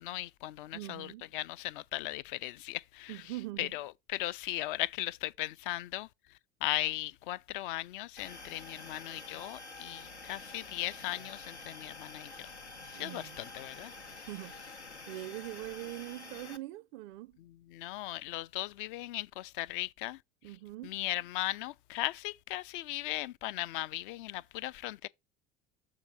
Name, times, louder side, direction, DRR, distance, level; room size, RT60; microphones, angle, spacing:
voice 1, 0.0-3.2 3.6-6.1 6.6-12.5 12.9-13.9 17.7-20.2 20.8-25.1, left 16 dB, 50° left, 0.5 m, -37 dB
voice 2, 0.7-1.3 3.1-3.7 12.9-13.4 14.3-17.4 20.4-21.0, right 17 dB, 45° right, 0.4 m, -43 dB
sound 1, 8.2-16.6, left 3 dB, 90° left, 0.8 m, -48 dB
6.9 x 3.7 x 5.3 m
figure-of-eight pair, 70°, 33 cm